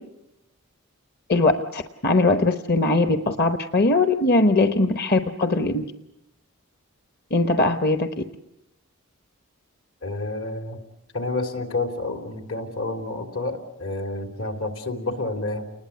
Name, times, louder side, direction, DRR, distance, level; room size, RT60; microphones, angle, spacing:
voice 1, 1.3-5.9 7.3-8.2, left 2 dB, 45° left, 8 dB, 1.0 m, -20 dB
voice 2, 10.0-10.8 11.1-15.7, left 2 dB, 75° left, 5 dB, 3.3 m, -29 dB
29.5 x 20.5 x 8.3 m, 0.88 s
head